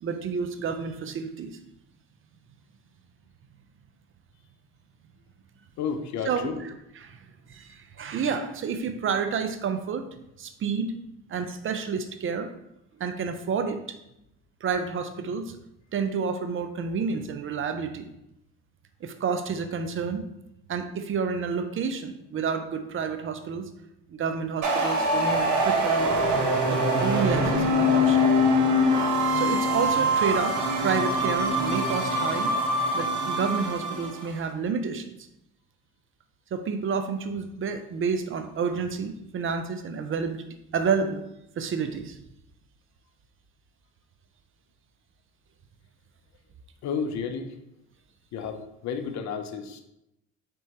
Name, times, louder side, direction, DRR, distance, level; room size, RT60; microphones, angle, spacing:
voice 1, 0.0-1.6 6.2-10.1 10.4-10.9 11.3-12.5 13.0-14.0 14.6-15.6 15.9-18.1 19.0-20.2 20.7-23.7 24.1-26.3 26.7-28.2 29.2-32.5 32.9-35.1 36.5-41.2 41.6-42.2, right 5 dB, 40° right, 8 dB, 0.6 m, -30 dB
voice 2, 5.8-6.6 46.8-47.5 48.3-49.8, left 6 dB, 65° left, 8 dB, 0.6 m, -32 dB
sound 1, 24.6-34.3, equal, 70° right, 1.0 m, -24 dB
4.3 x 3.5 x 2.8 m, 0.86 s
supercardioid pair, 70°, 31 cm